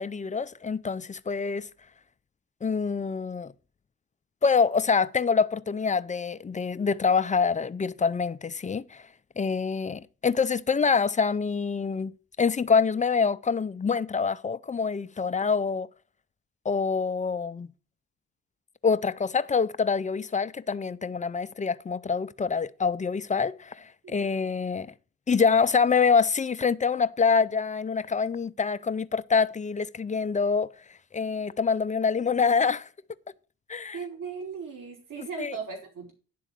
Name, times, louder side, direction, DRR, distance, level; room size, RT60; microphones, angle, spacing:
voice 1, 0.0-1.7 2.6-3.5 4.4-9.1 9.4-12.1 12.4-15.9 16.6-17.7 18.8-24.9 25.3-30.7 31.1-32.9 33.7-34.0 35.4-35.6, left 5 dB, 20° left, 0.4 m, -26 dB
voice 2, 33.9-36.1, right 6 dB, 60° right, 3.0 m, -37 dB
10.0 x 3.8 x 7.4 m
cardioid pair, 70°, 36 cm